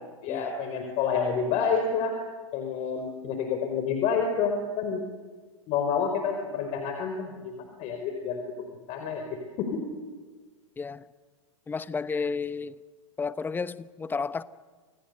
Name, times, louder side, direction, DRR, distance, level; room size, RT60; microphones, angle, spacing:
voice 1, 0.2-2.1 2.5-5.0 5.7-8.4 8.9-9.2 9.6-9.8, left 6 dB, 40° left, 4 dB, 4.8 m, -28 dB
voice 2, 11.7-12.8 13.2-14.4, left 5 dB, 10° left, 16 dB, 0.9 m, -32 dB
29.5 x 27.5 x 6.8 m, 1.4 s
hypercardioid pair, 110°, 17 cm